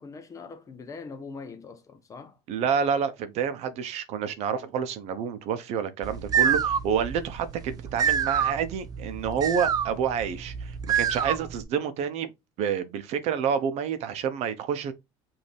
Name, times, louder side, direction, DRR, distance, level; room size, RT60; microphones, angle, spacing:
voice 1, 0.0-2.4, left 4 dB, 25° left, 0.8 m, -42 dB
voice 2, 2.5-12.3 12.6-14.9, right 7 dB, 55° right, 0.8 m, -28 dB
sound 1, 6.0-11.6, right 8 dB, 30° right, 0.4 m, -27 dB
5.2 x 2.8 x 3.3 m
cardioid pair, 135°, 13 cm